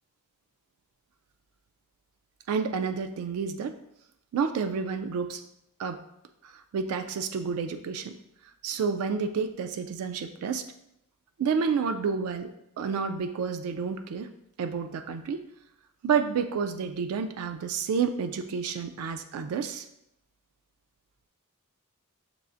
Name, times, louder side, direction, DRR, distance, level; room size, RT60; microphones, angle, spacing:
voice 1, 2.5-3.8 4.3-5.4 5.8-6.0 6.4-8.2 8.6-10.7 11.4-12.5 12.8-14.3 14.6-15.4 16.0-19.9, right 6 dB, 70° right, 8 dB, 0.3 m, -30 dB
6.8 x 2.4 x 2.5 m, 0.80 s
head